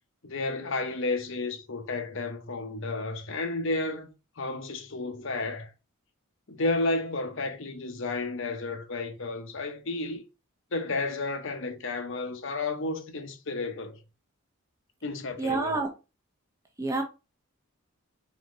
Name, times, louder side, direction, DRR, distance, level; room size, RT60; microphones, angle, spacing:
voice 1, 0.2-4.1 4.4-5.7 6.5-10.2 10.7-14.0 15.0-15.8, left 2 dB, 55° left, 0.8 m, -32 dB
voice 2, 15.4-15.9 16.8-17.0, right 3 dB, 15° right, 0.9 m, -27 dB
4.2 x 4.0 x 3.1 m
head